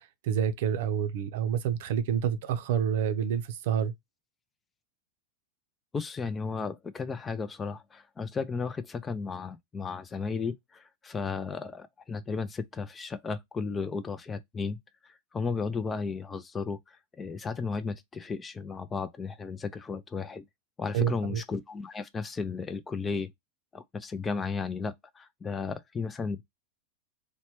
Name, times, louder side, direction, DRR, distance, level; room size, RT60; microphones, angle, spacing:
voice 1, 0.0-3.9 20.9-21.4, right 8 dB, 70° right, 0.5 m, -28 dB
voice 2, 5.9-14.8 15.0-20.4 20.8-23.3 23.7-26.4, left 4 dB, 20° left, 0.4 m, -34 dB
3.1 x 2.1 x 2.8 m
hypercardioid pair, 110°, 0 cm